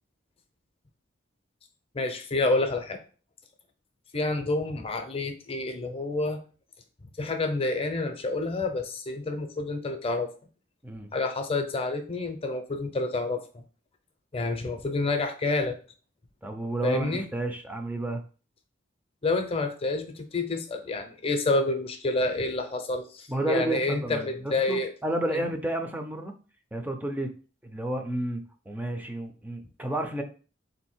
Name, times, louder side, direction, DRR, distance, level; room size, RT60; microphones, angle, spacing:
voice 1, 1.9-3.0 4.1-6.4 7.2-10.3 11.1-13.6 14.3-15.8 16.8-17.2 19.2-24.9 25.3-25.4, left 2 dB, 30° left, 6 dB, 0.6 m, -28 dB
voice 2, 16.4-18.2 23.3-26.3 26.7-27.3 27.6-30.2, right 1 dB, 10° right, 4 dB, 0.5 m, -31 dB
3.9 x 2.7 x 4.3 m, 0.38 s
head